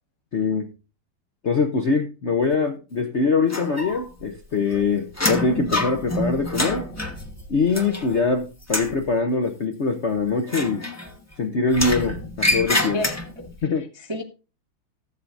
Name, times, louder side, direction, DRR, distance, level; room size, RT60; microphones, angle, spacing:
voice 1, 0.3-0.7 1.4-6.9 7.5-10.9 11.4-13.0 13.6-13.9, left 4 dB, 55° left, 4 dB, 0.7 m, -23 dB
sound 1, 3.5-4.3 4.5-8.3 8.6-9.0 10.4-11.3 11.7-13.5, left 1 dB, 15° left, 0.7 m, -27 dB
voice 2, 12.9-13.5 13.8-14.2, left 1 dB, 25° right, 2 dB, 0.6 m, -32 dB
14.5 x 8.0 x 2.6 m, 0.31 s
omnidirectional pair, 2.3 m